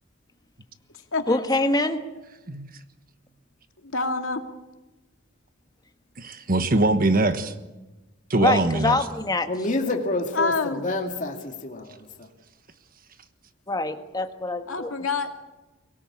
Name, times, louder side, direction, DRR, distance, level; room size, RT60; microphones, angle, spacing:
voice 1, 1.3-2.0 8.3-9.5 13.7-14.9, left 2 dB, 20° left, 7 dB, 1.5 m, -24 dB
voice 2, 3.8-4.4 10.3-10.8 14.7-15.3, left 4 dB, 75° left, 5 dB, 2.2 m, -26 dB
voice 3, 6.2-7.5 8.3-9.0, right 2 dB, 45° right, 10 dB, 1.3 m, -22 dB
voice 4, 9.5-12.3, left 2 dB, 40° left, 2 dB, 2.3 m, -28 dB
24.0 x 17.5 x 8.7 m, 1.1 s
head